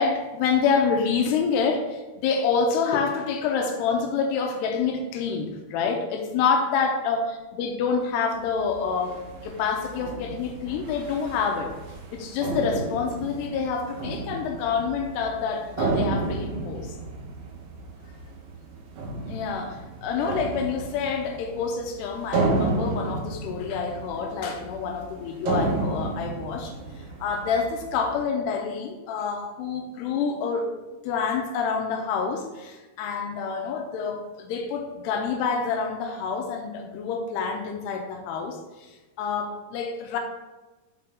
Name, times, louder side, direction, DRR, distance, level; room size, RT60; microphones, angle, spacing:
voice 1, 0.0-11.8 12.1-16.9 19.3-26.7 27.2-30.7 31.0-38.6 39.2-40.2, left 5 dB, 90° left, 3 dB, 2.8 m, -27 dB
sound 1, 8.3-28.2, right 3 dB, 70° right, 1.8 m, -32 dB
6.0 x 5.8 x 3.6 m, 1.2 s
omnidirectional pair, 4.8 m